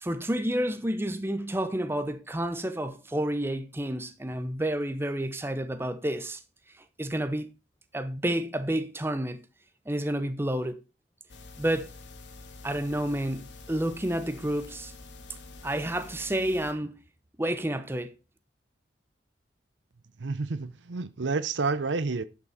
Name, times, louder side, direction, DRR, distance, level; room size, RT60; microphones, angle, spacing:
voice 1, 0.0-6.4 7.0-7.5 7.9-9.4 9.9-10.8 11.6-11.9 12.6-14.9 15.6-16.9 17.4-18.1, right 1 dB, 15° right, 0.7 m, -30 dB
sound 1, 11.3-16.7, left 3 dB, 80° left, 1.6 m, -47 dB
voice 2, 20.2-22.2, right 4 dB, 80° right, 0.7 m, -29 dB
11.0 x 6.2 x 4.1 m
head